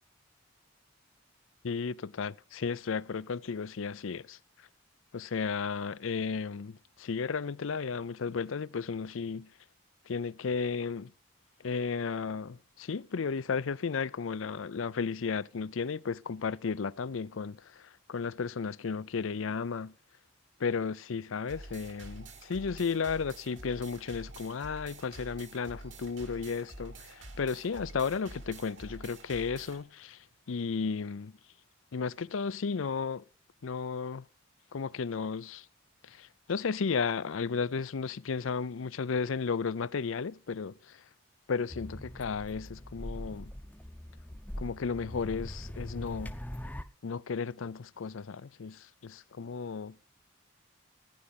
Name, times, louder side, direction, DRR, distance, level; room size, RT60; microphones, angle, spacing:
voice 1, 1.6-4.4 5.1-9.5 10.1-11.1 11.6-19.9 20.6-31.3 31.9-33.2 33.6-34.3 34.7-35.6 36.0-40.7 41.5-43.5 44.6-46.3 47.0-50.0, left 5 dB, 85° left, 0.5 m, -34 dB
sound 1, 21.5-29.8, right 2 dB, 70° right, 2.7 m, -47 dB
sound 2, 41.7-46.8, equal, 10° left, 0.7 m, -42 dB
15.0 x 9.8 x 5.8 m
head